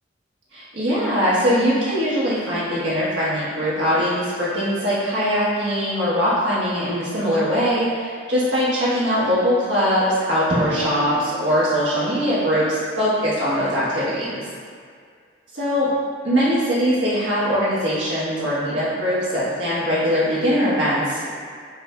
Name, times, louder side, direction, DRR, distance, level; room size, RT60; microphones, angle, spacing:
voice 1, 0.5-14.4 15.5-15.9 16.2-21.3, equal, 90° right, -9 dB, 1.2 m, -21 dB
Drum, 10.5-13.0, right 1 dB, 30° right, 0.5 m, -31 dB
5.3 x 2.7 x 2.2 m, 2.1 s
head